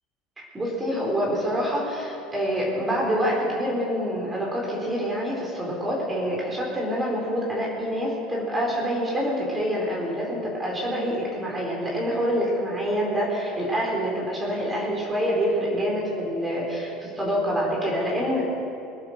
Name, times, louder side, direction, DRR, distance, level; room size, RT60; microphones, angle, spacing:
voice 1, 0.4-18.4, equal, 20° right, -3 dB, 4.6 m, -26 dB
21.5 x 9.1 x 6.7 m, 2.8 s
figure-of-eight pair, 70°, 0 cm